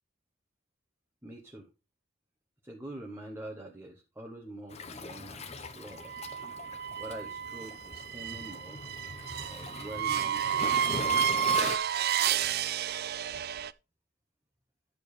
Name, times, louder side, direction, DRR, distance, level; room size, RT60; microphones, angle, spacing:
voice 1, 1.2-1.7 2.6-6.1 7.0-8.8 9.5-10.9, right 1 dB, 10° right, 0 dB, 1.0 m, -45 dB
Waves surf, 4.7-11.8, left 3 dB, 30° left, 0.8 m, -40 dB
sound 1, 6.0-13.7, right 9 dB, 50° right, 0.4 m, -31 dB
10.5 x 6.8 x 3.3 m, 0.27 s
head